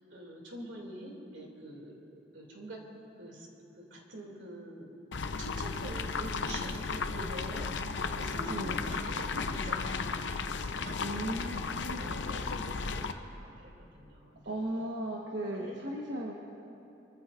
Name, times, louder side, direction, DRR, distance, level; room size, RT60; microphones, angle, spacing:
voice 1, 0.1-2.8 3.2-3.5 3.8-5.0 5.2-10.2 10.8-11.0 12.0-14.9 15.5-15.8, right 1 dB, 80° right, 0 dB, 2.5 m, -45 dB
sound 1, 5.1-13.1, left 4 dB, 75° left, 0.6 m, -34 dB
voice 2, 8.5-8.8 11.0-12.5 14.4-16.3, right 1 dB, 65° right, -2 dB, 1.2 m, -37 dB
25.0 x 14.0 x 2.5 m, 2.9 s
head